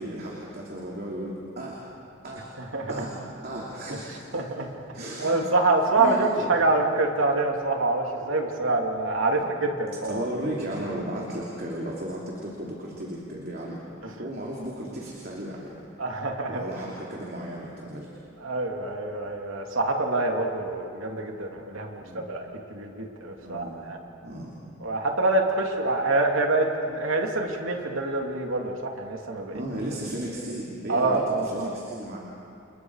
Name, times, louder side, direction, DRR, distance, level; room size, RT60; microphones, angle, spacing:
voice 1, 0.0-1.8 2.2-2.6 2.9-4.3 4.9-5.3 5.9-6.5 9.3-9.5 10.1-13.8 14.2-15.8 16.4-18.1 22.0-22.2 23.4-23.8 24.2-24.6 29.5-32.2, right 1 dB, 50° right, -4 dB, 3.0 m, -35 dB
voice 2, 4.3-4.7 5.2-10.2 14.0-14.1 16.0-16.7 18.4-22.4 22.7-24.0 24.8-29.5 30.9-31.7, right 2 dB, 80° right, 2 dB, 2.7 m, -26 dB
30.0 x 28.5 x 4.9 m, 2.5 s
head